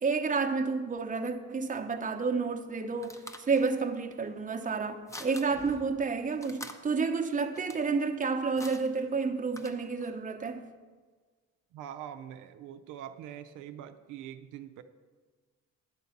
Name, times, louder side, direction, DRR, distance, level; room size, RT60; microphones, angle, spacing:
voice 1, 0.0-10.7, right 4 dB, 25° right, 0.8 m, -30 dB
sound 1, 2.5-10.2, left 1 dB, 10° left, 0.7 m, -49 dB
voice 2, 11.7-14.8, right 10 dB, 90° right, 0.6 m, -44 dB
10.5 x 3.9 x 7.1 m
cardioid pair, 90°, 30 cm